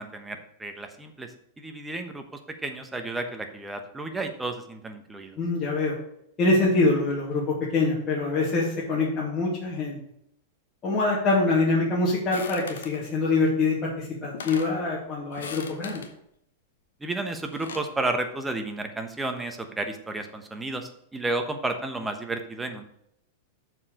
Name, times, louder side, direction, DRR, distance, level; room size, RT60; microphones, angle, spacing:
voice 1, 0.0-5.4 17.0-22.8, right 2 dB, 10° right, 5 dB, 1.1 m, -32 dB
voice 2, 5.4-6.0 6.4-10.0 10.8-16.0, left 3 dB, 25° left, -6 dB, 2.3 m, -24 dB
sound 1, 12.3-13.0 13.9-14.0 14.2-14.8 15.3-16.1 17.3-17.9, left 5 dB, 90° left, 1.1 m, -40 dB
7.0 x 4.7 x 6.6 m, 0.72 s
hypercardioid pair, 125°, 0 cm